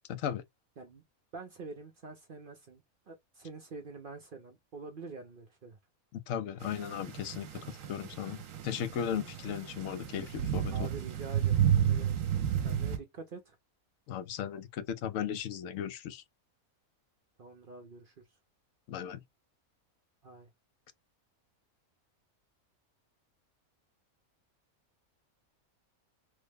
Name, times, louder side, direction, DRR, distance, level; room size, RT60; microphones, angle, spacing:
voice 1, 0.1-0.4 6.1-10.7 14.1-16.2 18.9-19.2, left 9 dB, 70° left, 0.9 m, -36 dB
voice 2, 1.3-5.8 10.7-12.2 12.6-13.6 17.4-18.2 20.2-20.5, right 4 dB, 50° right, 0.6 m, -46 dB
sound 1, 6.6-13.0, right 9 dB, 70° right, 1.1 m, -32 dB
3.4 x 2.1 x 3.4 m
omnidirectional pair, 1.5 m